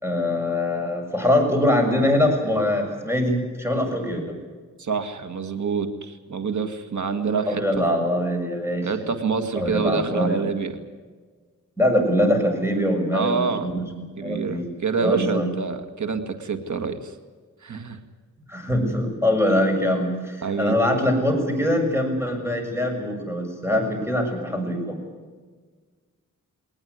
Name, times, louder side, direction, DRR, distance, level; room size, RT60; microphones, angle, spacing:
voice 1, 0.0-4.4 7.5-9.1 9.6-10.5 11.8-13.9 14.2-14.7 15.0-15.5 18.5-25.0, left 1 dB, 10° right, 3 dB, 6.9 m, -23 dB
voice 2, 4.8-7.6 8.8-10.8 13.1-13.7 14.2-17.1 17.6-18.0 20.4-20.8, right 5 dB, 65° right, 8 dB, 2.1 m, -26 dB
20.0 x 20.0 x 9.6 m, 1.5 s
wide cardioid pair, 95°, 32 cm